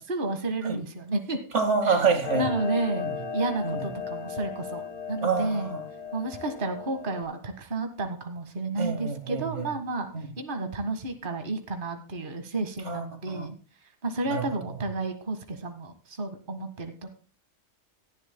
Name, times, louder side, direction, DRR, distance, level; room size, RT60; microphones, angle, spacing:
voice 1, 0.0-1.4 1.8-2.0 2.3-4.8 5.1-5.7 6.1-10.1 10.4-13.6 14.0-17.1, right 2 dB, 45° right, 1.7 m, -31 dB
voice 2, 1.5-2.5 3.0-3.1 3.6-3.8 5.2-5.8 8.8-9.7 10.1-10.3 12.9-13.5 14.3-14.4, right 5 dB, 70° right, 2.3 m, -27 dB
Clock, 2.2-7.2, left 6 dB, 55° left, 2.6 m, -35 dB
17.5 x 12.0 x 2.2 m
omnidirectional pair, 1.3 m